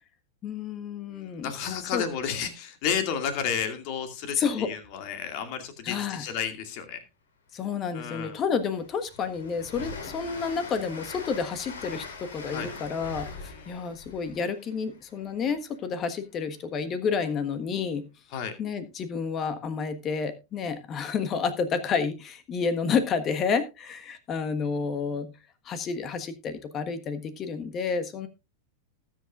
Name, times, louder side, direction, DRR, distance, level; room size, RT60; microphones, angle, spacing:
voice 1, 0.4-2.0 4.3-4.7 5.8-6.2 7.5-18.1 18.6-25.3 25.6-28.3, left 6 dB, 30° left, 11 dB, 1.4 m, -30 dB
voice 2, 1.1-7.0 7.9-8.4 12.5-12.7 13.5-13.8 18.3-18.5, left 7 dB, 45° left, 8 dB, 2.3 m, -32 dB
Train, 7.6-7.7 8.1-15.8, left 4 dB, 65° left, 3.0 m, -42 dB
19.5 x 7.8 x 2.4 m, 0.27 s
figure-of-eight pair, 90°, 0 cm